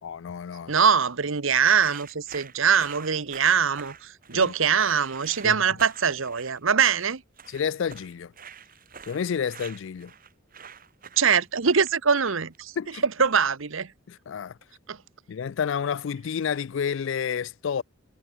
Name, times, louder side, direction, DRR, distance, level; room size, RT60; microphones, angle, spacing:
voice 1, 0.0-0.7 4.3-4.5 5.4-5.6 7.5-8.3 9.1-10.1 12.8-13.0 14.1-14.6 15.3-17.8, left 7 dB, 60° left, 0.4 m, -30 dB
voice 2, 0.7-7.2 11.2-12.7 13.0-13.9 14.9-15.0, right 6 dB, 70° right, 1.0 m, -23 dB
sound 1, 1.8-12.6, right 7 dB, 40° right, 6.6 m, -46 dB
head